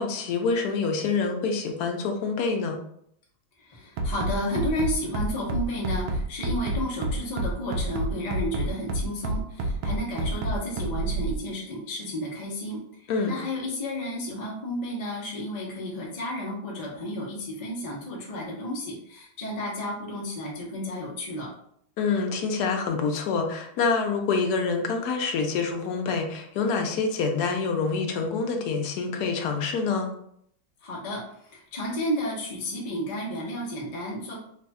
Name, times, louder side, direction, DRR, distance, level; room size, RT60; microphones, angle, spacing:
voice 1, 0.0-2.8 13.1-13.4 22.0-30.1, left 4 dB, 70° left, 3 dB, 0.9 m, -26 dB
voice 2, 3.6-12.8 13.3-21.5 30.8-34.3, left 1 dB, 50° left, -3 dB, 0.4 m, -32 dB
Bass drum, 4.0-11.4, right 1 dB, 70° right, 0.9 m, -28 dB
3.2 x 2.3 x 4.0 m, 0.69 s
omnidirectional pair, 2.1 m